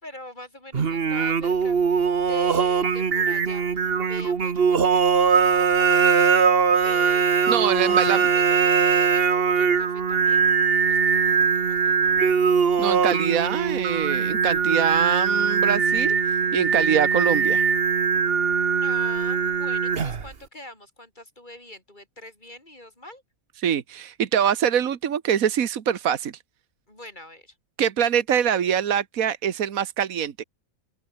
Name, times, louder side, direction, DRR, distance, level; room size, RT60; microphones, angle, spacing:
voice 1, 0.0-1.8 2.2-6.3 6.8-10.6 10.9-12.3 18.8-23.2 26.9-27.5, left 1 dB, 35° left, 6.4 m, -44 dB
Singing, 0.7-20.3, right 6 dB, 45° right, 1.5 m, -21 dB
voice 2, 7.5-8.3 12.8-16.2 16.5-17.6 23.6-26.3 27.8-30.4, right 8 dB, 80° right, 1.6 m, -24 dB
open air
omnidirectional pair, 1.5 m